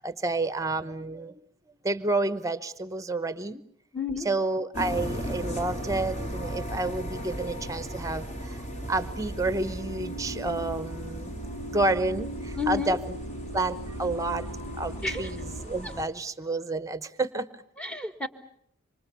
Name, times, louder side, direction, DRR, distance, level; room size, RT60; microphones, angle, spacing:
voice 1, 0.0-1.4 1.8-3.6 4.2-8.6 8.9-11.3 11.7-13.0 13.5-14.5 14.8-17.6, right 2 dB, 15° right, 14 dB, 0.9 m, -30 dB
voice 2, 3.9-4.3 12.6-13.0 15.0-15.2 17.8-18.3, left 5 dB, 5° left, 10 dB, 1.5 m, -30 dB
sound 1, 4.7-16.1, equal, 35° left, 2.8 m, -37 dB
sound 2, 8.8-15.6, right 1 dB, 90° left, 4.3 m, -39 dB
26.5 x 25.0 x 6.9 m, 0.72 s
head